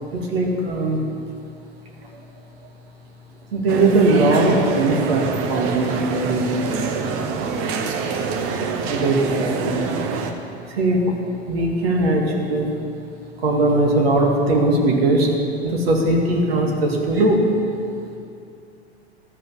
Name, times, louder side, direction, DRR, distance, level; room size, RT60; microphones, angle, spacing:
voice 1, 0.1-1.0 2.1-2.2 3.5-7.3 8.9-9.9 10.7-12.7 13.4-15.3 15.6-17.4, right 2 dB, 65° right, 0 dB, 2.1 m, -20 dB
sound 1, 3.7-10.3, right 5 dB, 40° right, 1.0 m, -26 dB
13.0 x 5.4 x 7.3 m, 2.6 s
figure-of-eight pair, 90°, 33 cm